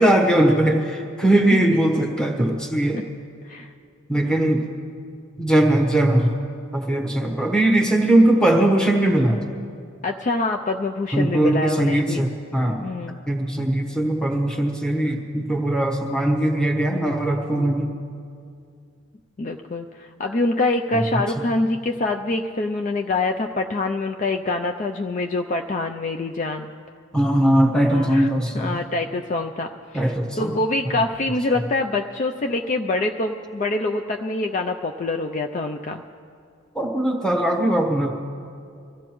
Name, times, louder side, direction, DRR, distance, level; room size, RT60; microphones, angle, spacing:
voice 1, 0.0-3.0 4.1-4.6 5.4-6.4 6.7-9.4 11.1-12.8 13.3-17.9 21.1-21.2 27.1-28.7 29.9-30.5 36.7-38.1, right 1 dB, 5° left, 1 dB, 1.1 m, -20 dB
voice 2, 10.0-12.2 12.8-13.2 19.4-26.7 27.9-28.3 28.5-36.0, left 2 dB, 35° left, 4 dB, 0.4 m, -25 dB
23.5 x 15.5 x 3.1 m, 2.3 s
head